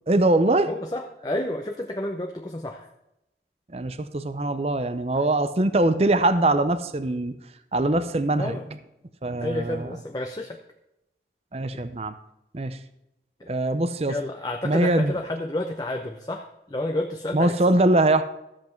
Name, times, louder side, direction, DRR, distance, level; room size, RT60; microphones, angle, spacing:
voice 1, 0.1-0.7 3.7-7.4 7.7-8.6 9.2-9.9 11.5-12.1 12.5-12.8 13.5-14.1 14.6-15.1 17.3-18.2, right 2 dB, 35° right, 11 dB, 0.6 m, -22 dB
voice 2, 0.7-2.9 8.4-8.7 9.4-10.6 11.7-11.8 13.4-13.5 14.1-17.5, left 1 dB, 20° left, 4 dB, 0.7 m, -30 dB
13.5 x 7.6 x 4.5 m, 0.86 s
head